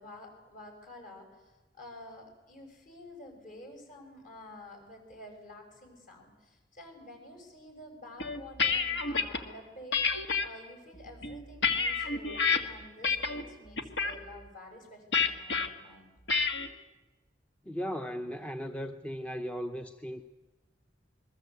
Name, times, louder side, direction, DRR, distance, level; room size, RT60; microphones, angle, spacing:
voice 1, 0.0-16.1, left 1 dB, 50° left, 4 dB, 6.8 m, -50 dB
sound 1, 8.2-9.4 9.9-10.5 11.1-12.6 13.0-13.4 13.8-14.2 15.1-15.7 16.3-16.7, left 5 dB, 70° left, 2.0 m, -28 dB
voice 2, 17.7-20.2, equal, 5° left, 6 dB, 0.8 m, -37 dB
27.5 x 22.0 x 8.2 m, 1.2 s
head